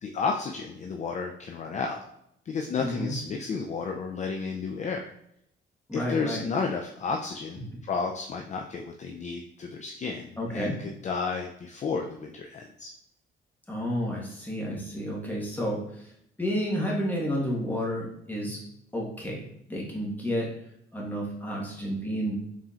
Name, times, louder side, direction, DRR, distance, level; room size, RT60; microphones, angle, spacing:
voice 1, 0.0-2.0 2.5-5.1 5.9-10.7 11.0-12.9, left 5 dB, 35° left, 3 dB, 0.4 m, -32 dB
voice 2, 2.8-3.1 5.9-6.5 10.4-10.8 13.7-16.1 16.4-18.6 18.9-20.5 20.9-22.3, equal, 10° left, -3 dB, 1.4 m, -31 dB
4.2 x 3.7 x 2.4 m, 0.74 s
cardioid pair, 90°, 20 cm